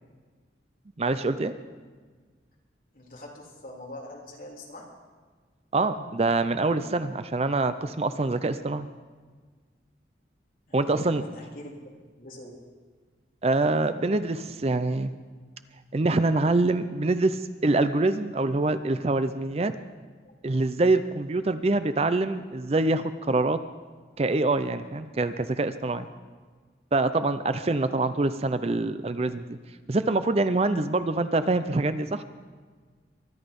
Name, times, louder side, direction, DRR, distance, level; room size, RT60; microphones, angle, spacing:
voice 1, 1.0-1.5 5.7-8.9 10.7-11.2 13.4-15.1 15.9-19.7 20.4-23.6 24.2-26.1 26.9-29.6 29.9-32.2, right 2 dB, 35° right, 12 dB, 0.5 m, -25 dB
voice 2, 2.9-4.9 10.7-11.7 12.2-12.5 20.2-20.3 30.2-30.6, left 1 dB, 50° left, -2 dB, 3.3 m, -44 dB
23.0 x 11.0 x 5.3 m, 1.5 s
head